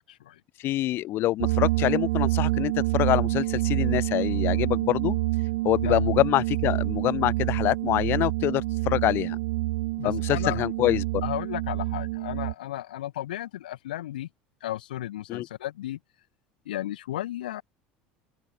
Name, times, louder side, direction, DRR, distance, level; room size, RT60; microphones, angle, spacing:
voice 1, 0.0-0.4 5.8-6.0 10.0-10.7 11.2-14.3 14.6-16.0 16.6-17.6, left 13 dB, 90° left, 3.1 m, -34 dB
voice 2, 0.6-5.2 5.6-9.4 10.0-11.2 15.3-15.5, left 15 dB, 55° left, 4.4 m, -25 dB
sound 1, 1.4-12.5, right 20 dB, 80° right, 1.1 m, -27 dB
open air
supercardioid pair, 90°, 5 cm